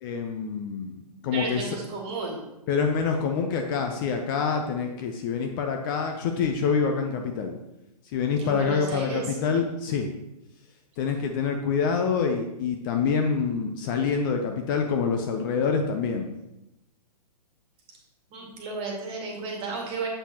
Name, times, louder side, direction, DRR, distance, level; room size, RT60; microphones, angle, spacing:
voice 1, 0.0-1.8 2.7-7.5 8.1-10.1 11.0-16.3, left 5 dB, 30° left, 4 dB, 0.6 m, -26 dB
voice 2, 1.3-2.5 8.4-9.4 18.3-20.1, right 3 dB, 25° right, -1 dB, 1.9 m, -33 dB
7.5 x 6.7 x 2.9 m, 0.91 s
figure-of-eight pair, 125°, 20 cm